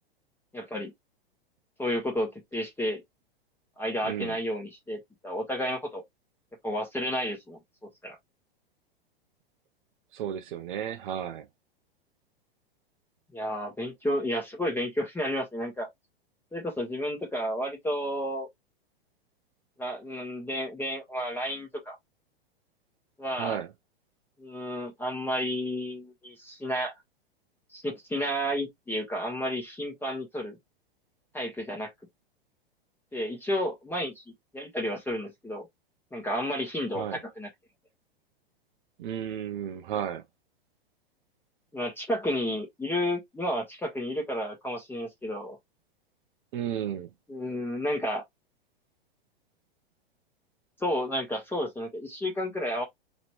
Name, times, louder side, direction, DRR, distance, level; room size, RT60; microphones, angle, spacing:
voice 1, 0.5-0.9 1.8-3.0 3.8-6.0 6.6-8.1 13.3-15.9 16.5-18.5 19.8-21.9 23.2-23.6 24.4-26.9 27.7-30.6 31.3-31.9 33.1-34.2 34.5-35.7 36.1-37.5 41.7-45.6 47.3-48.2 50.8-52.8, equal, 5° left, 1.3 m, -31 dB
voice 2, 4.0-4.4 10.1-11.5 23.3-23.7 36.9-37.2 39.0-40.2 46.5-47.1, right 9 dB, 55° right, 0.7 m, -33 dB
4.0 x 3.1 x 3.0 m
hypercardioid pair, 100°, 30 cm